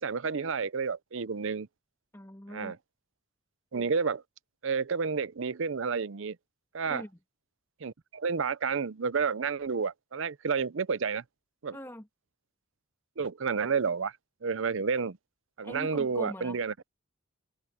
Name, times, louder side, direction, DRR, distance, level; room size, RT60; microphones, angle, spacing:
voice 1, 0.0-1.7 2.5-2.8 3.7-4.2 4.6-6.4 6.7-7.0 7.8-11.2 11.6-11.8 13.2-14.1 14.4-15.2 15.6-16.7, right 5 dB, 60° right, 0.6 m, -30 dB
voice 2, 2.1-2.8 6.9-7.1 11.7-12.1 15.6-16.6, left 1 dB, 15° left, 2.5 m, -42 dB
head